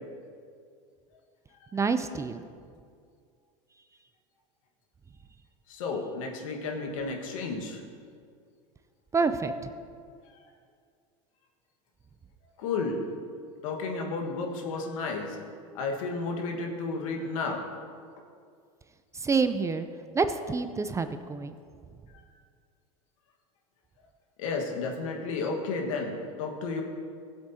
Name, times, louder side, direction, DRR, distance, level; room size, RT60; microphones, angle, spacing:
voice 1, 1.7-2.4 9.1-9.7 19.1-19.9 20.1-21.6, right 4 dB, 15° right, 10 dB, 0.4 m, -27 dB
voice 2, 5.7-7.8 12.6-13.0 13.6-15.4 15.7-17.6 22.1-22.3 24.4-26.8, left 3 dB, 75° left, 2 dB, 1.5 m, -32 dB
15.5 x 8.0 x 2.8 m, 2.2 s
hypercardioid pair, 100°, 17 cm